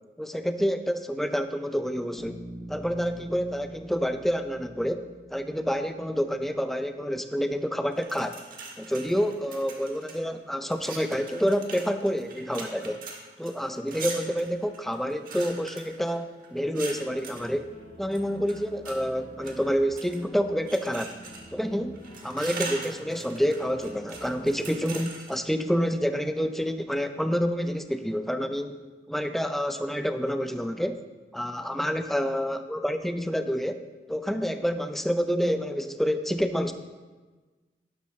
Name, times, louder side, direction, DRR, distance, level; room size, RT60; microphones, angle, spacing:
voice 1, 0.2-2.4 2.7-8.4 8.8-13.0 13.4-17.7 18.0-21.2 21.5-28.8 29.1-31.0 31.3-36.7, equal, ahead, 8 dB, 0.4 m, -28 dB
Bass guitar, 2.2-6.2, right 1 dB, 20° right, 1.2 m, -44 dB
sound 1, 7.9-10.2 10.7-17.5 18.1-19.0 19.4-20.3 20.7-21.6 21.9-25.4, right 4 dB, 50° right, 1.5 m, -41 dB
sound 2, 16.9-25.0, equal, 45° left, 3.1 m, -49 dB
11.5 x 11.5 x 3.1 m, 1.3 s
head